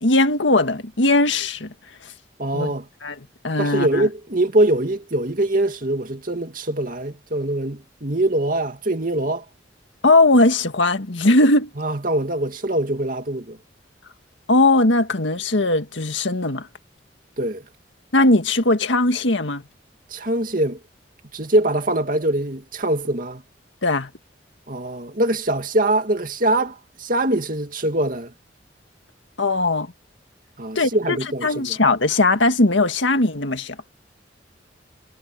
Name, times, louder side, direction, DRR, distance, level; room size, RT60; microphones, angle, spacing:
voice 1, 0.0-1.7 2.5-2.7 3.0-3.2 3.4-4.1 10.0-11.7 14.5-16.7 18.1-19.6 23.8-24.1 29.4-29.9 30.8-33.8, left 2 dB, 85° left, 1.9 m, -19 dB
voice 2, 2.4-2.9 3.6-9.5 11.8-13.6 17.4-17.6 20.1-20.8 21.3-23.4 24.7-28.3 30.6-31.8, right 1 dB, 45° right, 2.4 m, -23 dB
head